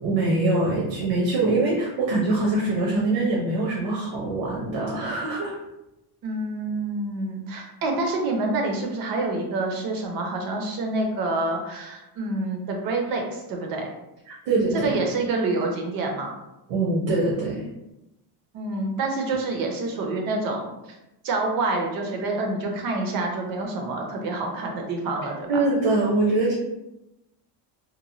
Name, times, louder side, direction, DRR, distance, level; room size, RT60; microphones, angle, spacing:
voice 1, 0.0-5.6 14.3-14.9 16.7-17.6 25.5-26.5, right 2 dB, 80° right, -4 dB, 0.9 m, -23 dB
voice 2, 6.2-13.9 14.8-16.3 18.5-20.7 21.2-25.5, right 2 dB, 50° right, 2 dB, 0.6 m, -27 dB
3.0 x 2.1 x 2.6 m, 0.92 s
cardioid pair, 175°, 44 cm